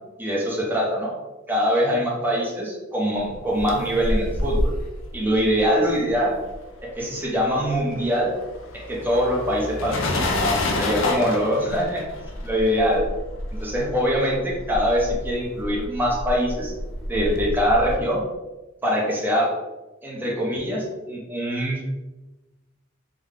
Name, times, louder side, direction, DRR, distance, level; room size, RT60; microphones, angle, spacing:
voice 1, 0.2-1.1 1.5-4.7 5.1-6.4 6.8-8.3 8.7-12.0 12.4-13.1 13.6-16.7 17.1-18.2 18.8-19.6 20.0-21.8, equal, 10° right, -4 dB, 0.8 m, -23 dB
sound 1, 3.3-7.0 7.2-18.0, left 1 dB, 70° left, 0.6 m, -29 dB
3.7 x 2.3 x 3.6 m, 1.1 s
head